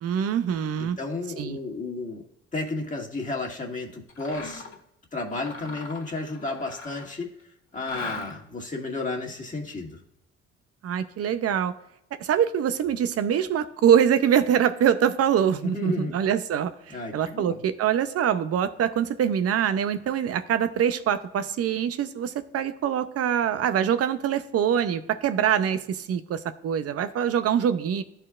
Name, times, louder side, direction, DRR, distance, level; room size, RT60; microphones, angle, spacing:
voice 1, 0.0-1.0 1.4-1.6 10.8-11.7 12.2-28.0, right 9 dB, 55° right, 11 dB, 0.6 m, -24 dB
voice 2, 0.8-2.2 2.5-4.8 5.1-7.3 7.7-10.0 15.6-16.2 16.9-17.6, left 3 dB, 25° left, -1 dB, 2.0 m, -32 dB
Mechanisms, 4.1-4.8 5.3-7.2 7.7-8.6, left 3 dB, 45° left, 1.8 m, -39 dB
13.0 x 4.5 x 2.4 m, 0.81 s
supercardioid pair, 60°, 30 cm